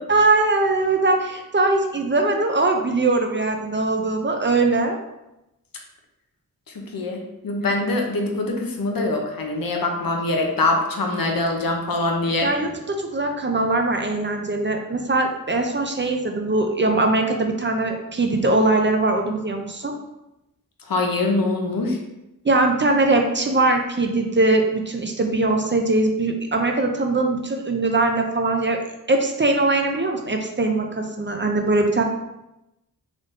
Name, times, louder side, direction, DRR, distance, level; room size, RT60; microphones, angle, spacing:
voice 1, 0.1-5.0 12.4-19.9 22.4-28.8 29.1-32.0, right 2 dB, 30° right, 3 dB, 0.4 m, -21 dB
voice 2, 6.8-12.5 20.9-22.0, left 2 dB, 65° left, 2 dB, 0.7 m, -23 dB
3.7 x 2.6 x 3.6 m, 0.92 s
wide cardioid pair, 80°, 36 cm